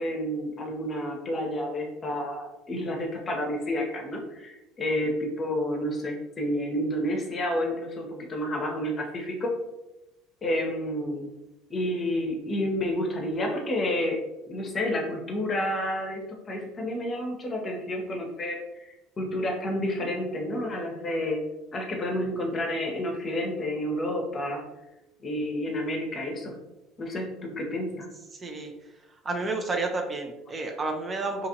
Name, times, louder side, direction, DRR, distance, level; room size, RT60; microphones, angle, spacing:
voice 1, 0.0-9.5 10.4-11.3 11.7-14.2 14.5-21.4 21.7-24.6 25.2-26.5 27.0-28.1, left 1 dB, 35° left, 1 dB, 0.7 m, -30 dB
voice 2, 28.3-28.7 29.2-31.5, right 3 dB, 30° right, 3 dB, 0.5 m, -30 dB
2.8 x 2.5 x 2.7 m, 0.97 s
hypercardioid pair, 65°, 0 cm